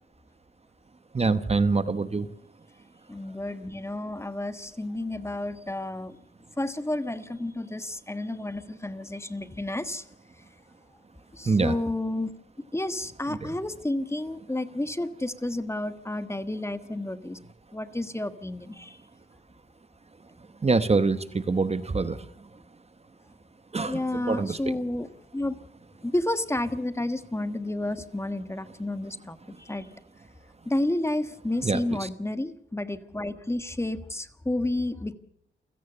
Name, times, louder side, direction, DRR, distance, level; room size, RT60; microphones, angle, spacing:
voice 1, 1.1-2.3 11.5-11.7 13.3-13.5 20.6-22.2 23.7-24.6 31.6-32.1, right 4 dB, 30° right, 12 dB, 1.0 m, -25 dB
voice 2, 3.1-6.2 6.6-10.0 11.3-12.3 12.7-17.4 17.7-19.0 23.9-25.1 25.3-25.6 26.0-29.9 30.6-35.1, left 1 dB, 15° left, 11 dB, 1.3 m, -31 dB
28.5 x 17.0 x 6.8 m, 0.75 s
wide cardioid pair, 145°, 21 cm